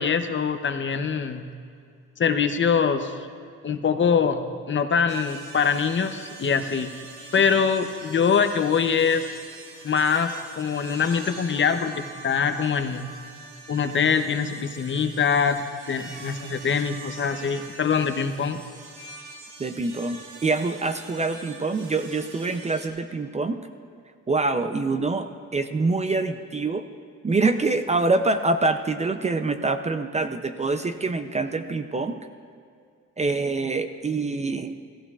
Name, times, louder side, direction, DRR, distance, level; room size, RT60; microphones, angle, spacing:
voice 1, 0.0-1.5 2.2-3.1 3.6-6.9 7.3-9.3 9.8-13.1 13.7-15.6 15.9-18.6, left 6 dB, 40° left, 8 dB, 0.8 m, -23 dB
sound 1, 5.1-22.9, right 3 dB, 80° right, 1.8 m, -44 dB
voice 2, 19.6-23.6 24.3-26.8 27.2-32.2 33.2-34.7, right 3 dB, 25° right, 9 dB, 0.5 m, -25 dB
15.5 x 15.0 x 2.4 m, 2.3 s
cardioid pair, 90°, 30 cm